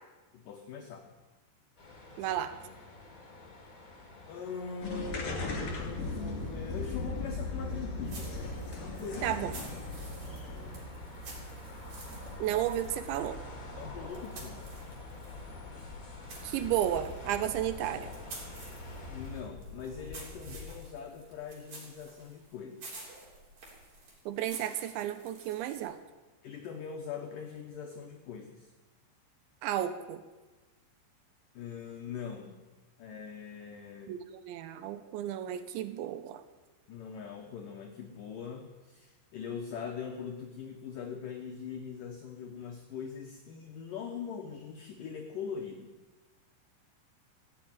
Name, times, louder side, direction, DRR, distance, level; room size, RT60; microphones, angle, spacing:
voice 1, 0.3-1.1 4.3-8.3 8.8-9.4 13.7-14.7 19.1-23.1 26.4-28.7 31.5-32.6 33.0-34.2 36.9-45.9, left 6 dB, 85° left, 2 dB, 1.9 m, -42 dB
sound 1, 1.8-19.4, left 2 dB, 30° left, 1.7 m, -49 dB
voice 2, 2.2-2.5 9.2-9.5 12.4-13.4 16.4-18.1 24.3-26.0 29.6-30.2 34.1-36.4, right 11 dB, 80° right, 11 dB, 3.0 m, -33 dB
sound 2, 4.8-21.0, left 3 dB, 45° left, 3.0 m, -41 dB
sound 3, 8.0-15.4 15.8-26.0, right 3 dB, 50° right, 5.1 m, -51 dB
15.5 x 7.9 x 9.1 m, 1.2 s
omnidirectional pair, 5.5 m